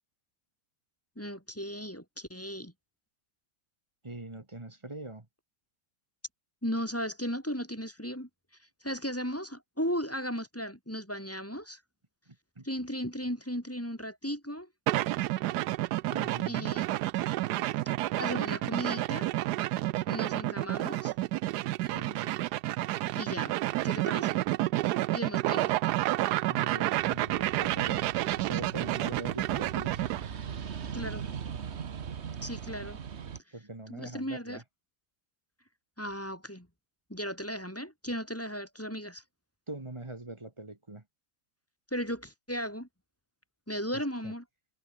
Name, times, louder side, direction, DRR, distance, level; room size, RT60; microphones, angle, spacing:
voice 1, 1.2-2.7 6.6-8.3 8.8-11.8 12.6-14.7 16.5-16.8 17.5-17.6 18.2-19.3 20.1-21.1 23.2-23.6 23.8-24.4 25.1-25.7 30.9-31.2 32.4-33.0 33.9-34.6 36.0-36.7 37.1-39.2 41.9-42.9 43.7-44.4, equal, 5° left, 3.9 m, -36 dB
voice 2, 4.0-5.3 12.3-12.7 16.1-16.8 21.9-22.4 26.5-28.1 28.5-30.0 33.5-34.6 39.7-41.0 43.9-44.3, right 2 dB, 15° right, 1.5 m, -42 dB
sound 1, 14.9-30.3, right 16 dB, 80° right, 0.9 m, -30 dB
sound 2, 27.0-33.4, right 7 dB, 40° right, 1.0 m, -40 dB
omnidirectional pair, 2.2 m